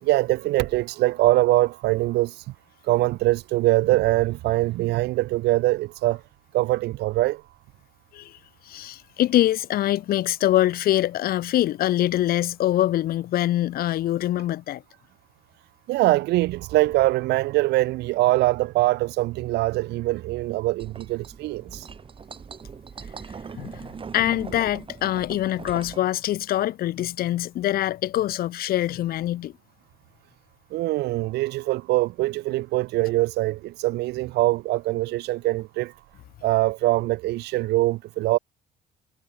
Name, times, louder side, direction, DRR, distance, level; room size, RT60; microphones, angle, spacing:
voice 1, 0.0-2.3 2.9-6.2 6.5-7.4 15.9-21.9 30.7-35.9 36.4-38.4, right 18 dB, 80° right, 1.6 m, -23 dB
voice 2, 8.7-14.8 23.5-23.9 24.1-29.5, left 13 dB, 60° left, 0.9 m, -24 dB
sound 1, 20.8-26.0, right 6 dB, 30° right, 2.8 m, -40 dB
cardioid pair, 110°, 17 cm